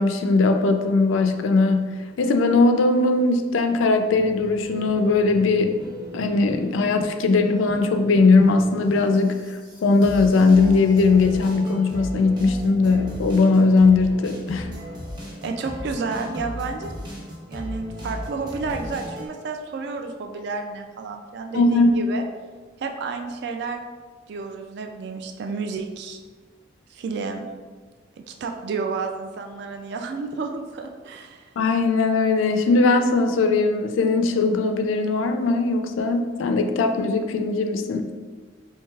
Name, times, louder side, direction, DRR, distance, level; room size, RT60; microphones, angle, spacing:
voice 1, 0.0-5.8 6.1-14.8 21.5-22.0 31.6-38.1, left 3 dB, 90° left, 7 dB, 0.4 m, -19 dB
sound 1, 4.1-19.3, left 1 dB, 25° right, 0.8 m, -37 dB
voice 2, 15.4-16.9 17.5-22.2 22.8-23.8 24.3-26.2 26.9-27.5 28.2-31.5, right 4 dB, 60° right, 4 dB, 0.3 m, -31 dB
4.6 x 3.0 x 2.3 m, 1.4 s
head